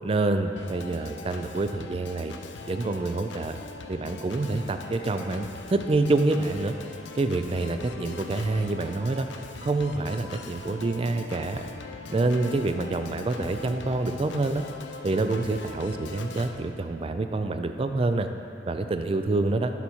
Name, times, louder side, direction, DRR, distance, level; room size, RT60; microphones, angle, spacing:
voice 1, 0.0-2.3 2.7-3.6 3.9-6.8 7.2-9.3 9.6-11.6 12.1-14.6 15.0-18.3 18.7-19.7, right 2 dB, 30° right, 7 dB, 0.3 m, -27 dB
Organ, 0.6-16.6, left 4 dB, 80° left, 0.5 m, -41 dB
sound 1, 4.7-10.5, equal, 50° left, 1.7 m, -53 dB
11.5 x 4.2 x 4.4 m, 2.5 s
head